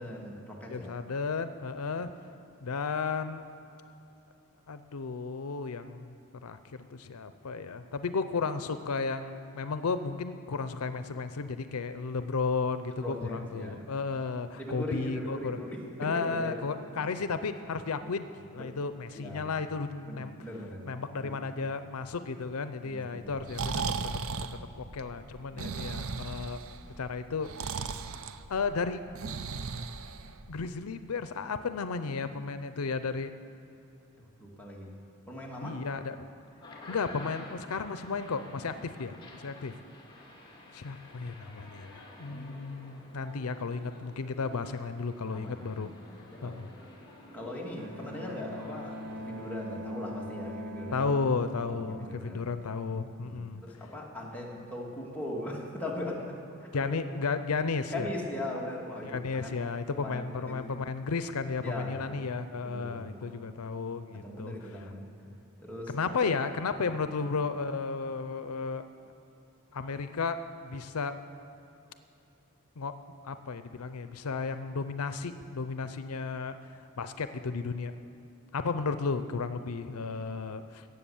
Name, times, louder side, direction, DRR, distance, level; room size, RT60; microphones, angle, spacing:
voice 1, 0.0-0.9 12.9-13.9 14.6-16.6 17.0-17.2 18.6-18.8 19.1-19.5 20.0-20.9 21.2-21.5 22.8-23.7 25.5-26.0 34.4-35.0 35.3-35.8 42.3-43.4 45.3-46.0 46.3-46.6 47.3-51.0 51.7-52.5 53.2-56.9 57.9-60.7 61.6-62.1 62.6-63.4 64.1-65.3 65.6-66.0 66.9-67.0, left 1 dB, 5° left, -3 dB, 2.2 m, -40 dB
voice 2, 0.7-2.1 2.6-3.4 4.7-6.1 6.4-6.6 6.9-15.6 16.0-20.3 20.9-23.8 24.7-26.6 27.0-27.5 28.5-29.0 30.5-33.3 35.6-36.1 36.9-39.8 40.7-45.9 46.4-46.7 50.9-53.6 56.7-58.1 59.0-64.5 65.9-68.8 69.7-71.1 72.8-72.9 73.2-76.7 77.0-77.9 78.5-80.9, left 4 dB, 85° left, 11 dB, 0.6 m, -33 dB
Breathing, 23.3-30.7, right 5 dB, 70° right, 0.6 m, -36 dB
sound 1, 36.5-49.8, left 1 dB, 20° left, 2.1 m, -51 dB
Bowed string instrument, 47.8-52.8, left 1 dB, 85° right, 1.7 m, -41 dB
17.0 x 8.0 x 7.1 m, 2.9 s
head